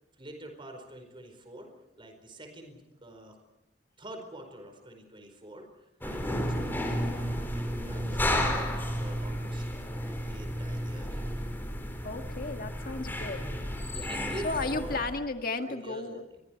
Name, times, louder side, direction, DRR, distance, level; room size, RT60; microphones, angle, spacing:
voice 1, 0.2-1.7 2.0-3.4 4.0-5.7 6.0-9.6 10.0-11.2 13.9-15.0 15.6-16.4, right 1 dB, 30° right, 5 dB, 4.8 m, -46 dB
sound 1, 6.0-15.2, equal, 10° left, 4.4 m, -32 dB
voice 2, 12.0-13.4 14.4-16.2, left 3 dB, 55° left, 5 dB, 1.9 m, -34 dB
29.5 x 23.5 x 4.7 m, 0.93 s
head